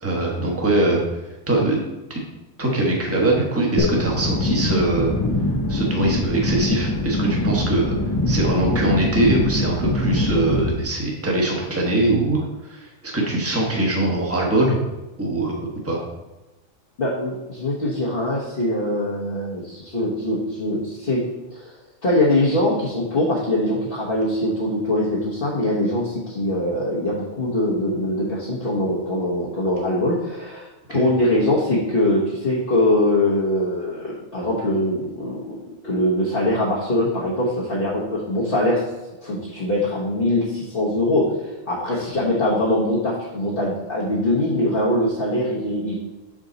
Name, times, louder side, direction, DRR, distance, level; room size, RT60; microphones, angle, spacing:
voice 1, 0.0-1.0 1.5-1.8 2.1-2.2 2.6-5.1 5.7-8.0 8.3-14.8 15.2-15.5 15.8-16.0 30.9-31.0, right 2 dB, 10° right, -1 dB, 1.1 m, -22 dB
sound 1, 3.8-10.7, left 1 dB, 20° left, 0.6 m, -23 dB
voice 2, 17.0-21.7 22.0-35.6 35.8-38.8 39.2-46.0, left 1 dB, 45° left, -6 dB, 1.3 m, -22 dB
6.3 x 4.9 x 4.0 m, 1.1 s
omnidirectional pair, 1.4 m